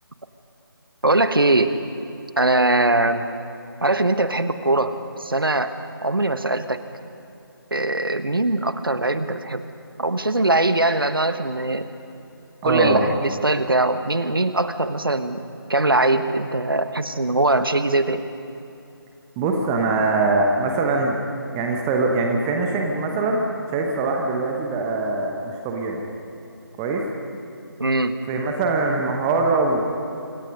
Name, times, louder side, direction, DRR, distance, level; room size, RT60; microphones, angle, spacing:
voice 1, 1.0-1.8 2.4-3.3 3.8-5.7 6.0-6.8 7.7-9.6 10.0-11.8 12.6-15.4 15.7-18.2 27.8-28.1, right 2 dB, 65° right, 10 dB, 1.4 m, -21 dB
voice 2, 12.6-13.1 19.4-21.2 21.5-23.4 23.7-26.0 26.8-27.0 28.3-29.8, right 3 dB, 10° right, 2 dB, 1.0 m, -22 dB
26.0 x 23.0 x 5.4 m, 2.7 s
figure-of-eight pair, 155°, 12 cm